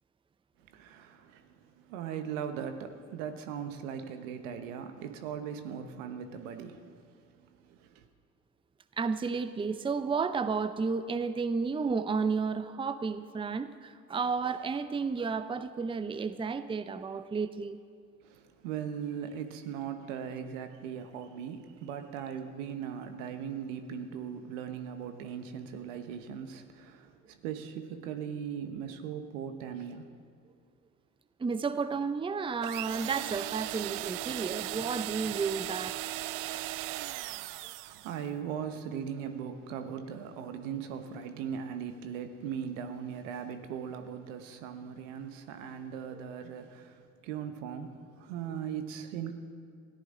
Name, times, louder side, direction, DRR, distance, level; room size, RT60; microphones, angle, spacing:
voice 1, 0.7-7.0 7.3-8.0 18.2-30.1 37.8-49.3, right 8 dB, 80° right, 1.2 m, -39 dB
voice 2, 9.0-17.8 31.4-35.9 36.5-36.6 46.1-46.2, right 5 dB, 15° right, 0.6 m, -32 dB
sound 1, 32.6-38.2, right 16 dB, 60° right, 0.5 m, -37 dB
20.0 x 14.5 x 3.8 m
hypercardioid pair, 65°, 38 cm